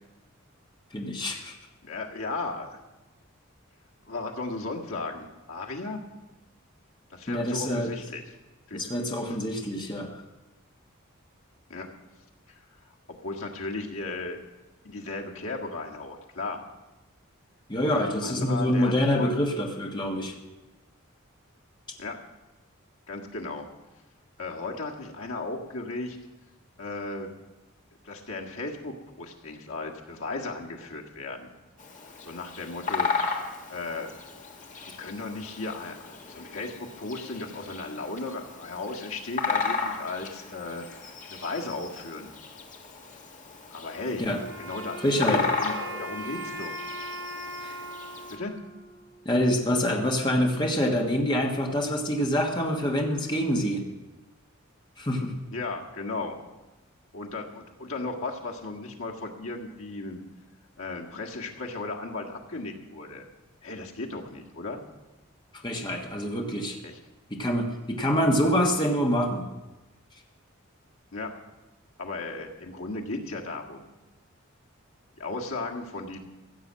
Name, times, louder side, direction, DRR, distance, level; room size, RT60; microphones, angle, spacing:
voice 1, 0.9-1.5 7.3-7.9 8.7-10.2 17.7-20.4 44.2-44.4 45.0-45.4 47.6-47.8 49.2-53.8 55.0-55.3 65.6-66.8 67.3-69.5, equal, 20° left, 1 dB, 1.5 m, -26 dB
voice 2, 1.8-2.8 4.1-6.0 7.1-8.2 8.7-8.9 11.7-11.9 12.5-12.6 13.1-14.4 14.8-16.6 17.8-19.3 22.0-22.2 23.1-23.7 24.4-26.2 26.8-27.3 28.0-31.5 32.2-33.1 33.7-34.1 34.8-40.9 41.3-42.3 43.7-44.2 44.6-46.8 48.3-48.5 55.5-56.4 57.1-60.2 60.8-63.2 63.6-64.8 66.8-67.0 71.1-71.3 72.0-73.8 75.2-76.2, left 3 dB, 80° left, 0 dB, 1.8 m, -35 dB
Bird vocalization bird call bird song, 31.8-48.4, left 5 dB, 35° left, 1.6 m, -35 dB
Wind instrument woodwind instrument, 44.3-49.5, right 1 dB, 65° right, 3.9 m, -39 dB
15.0 x 8.0 x 7.5 m, 1.1 s
head